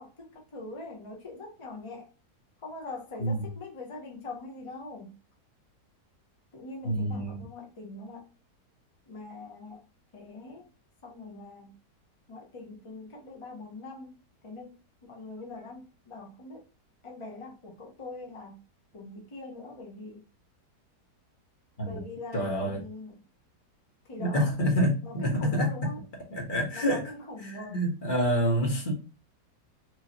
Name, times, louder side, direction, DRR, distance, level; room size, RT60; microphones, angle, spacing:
voice 1, 0.0-2.1 2.6-5.1 6.5-8.3 9.1-9.8 10.1-10.7 11.0-11.7 12.3-16.6 17.0-18.6 18.9-20.2 21.8-23.2 24.0-24.5 25.0-26.0 26.7-27.8, left 2 dB, 55° left, 0.3 m, -43 dB
voice 2, 6.8-7.4 21.8-22.0 22.3-22.8 24.2-25.7 26.3-27.0 27.4-28.9, equal, 35° left, 1.1 m, -27 dB
4.6 x 2.6 x 2.8 m
omnidirectional pair, 1.7 m